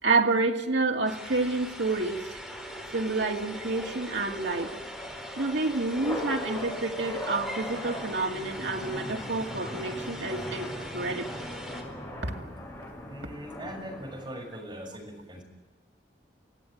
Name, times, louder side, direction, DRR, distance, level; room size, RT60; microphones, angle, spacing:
voice 1, 0.0-2.3 2.9-4.7 5.4-11.3 12.2-12.4, right 3 dB, 90° right, 2 dB, 2.3 m, -29 dB
sound 1, 1.1-11.8, equal, ahead, 4.3 m, -43 dB
sound 2, 1.2-14.2, left 1 dB, 20° left, 6.7 m, -40 dB
voice 2, 13.1-15.4, equal, 25° right, 1 dB, 6.6 m, -40 dB
24.5 x 16.5 x 9.3 m, 1.2 s
head